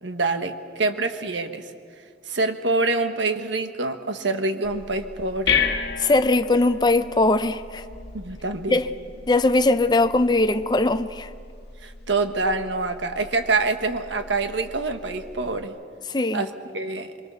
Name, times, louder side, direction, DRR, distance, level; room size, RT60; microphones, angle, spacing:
voice 1, 0.0-1.6 2.3-5.6 8.1-8.8 11.8-15.7 16.3-17.1, right 3 dB, 90° right, 1.5 m, -26 dB
sound 1, 4.6-15.6, left 6 dB, 60° left, 1.6 m, -33 dB
voice 2, 6.0-7.9 8.7-8.9 9.3-11.3 16.1-16.4, left 2 dB, 25° left, 0.6 m, -20 dB
25.0 x 23.0 x 7.0 m
head